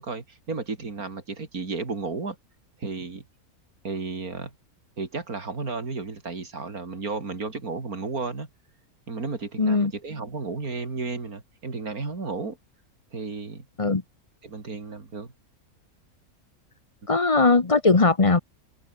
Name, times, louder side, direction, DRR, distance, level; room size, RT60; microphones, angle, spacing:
voice 1, 0.0-2.4 2.8-3.2 3.8-4.5 5.0-8.5 9.1-12.6 13.1-13.7 14.4-15.3, right 4 dB, 75° right, 3.7 m, -33 dB
voice 2, 9.6-9.9 13.8-14.0 17.1-18.4, left 3 dB, 25° left, 1.0 m, -19 dB
omnidirectional pair, 1.5 m